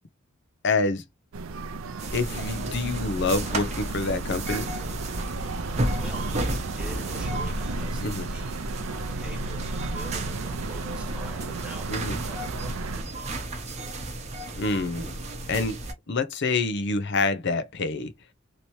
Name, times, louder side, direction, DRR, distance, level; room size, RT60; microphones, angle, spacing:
voice 1, 0.6-1.0 2.1-4.7 8.0-8.3 11.9-12.2 14.6-15.1 15.5-15.8 16.1-18.1, left 3 dB, 60° left, 0.6 m, -27 dB
sound 1, 1.3-13.0, right 3 dB, 85° right, 0.5 m, -34 dB
sound 2, 2.0-15.9, right 1 dB, 35° right, 0.8 m, -33 dB
voice 2, 5.9-8.5 9.2-11.9 12.3-13.8, right 1 dB, 5° right, 1.6 m, -46 dB
3.1 x 2.9 x 2.7 m
head